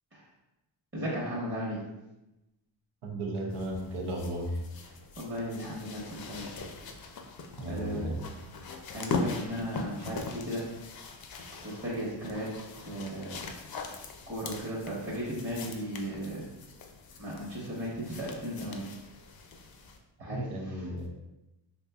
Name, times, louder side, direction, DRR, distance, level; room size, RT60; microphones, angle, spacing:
voice 1, 0.9-1.8 5.2-6.5 7.7-8.1 8.9-10.6 11.6-12.5 12.9-13.4 14.3-16.4 17.2-18.9 20.2-20.9, equal, 25° right, -7 dB, 0.9 m, -35 dB
voice 2, 3.0-4.6 7.6-8.3 20.3-21.1, right 1 dB, 90° right, 0 dB, 0.7 m, -34 dB
sound 1, 3.5-20.0 21.0-21.1, left 4 dB, 50° left, 0.5 m, -41 dB
3.9 x 2.7 x 2.3 m, 0.96 s
cardioid pair, 60°, 48 cm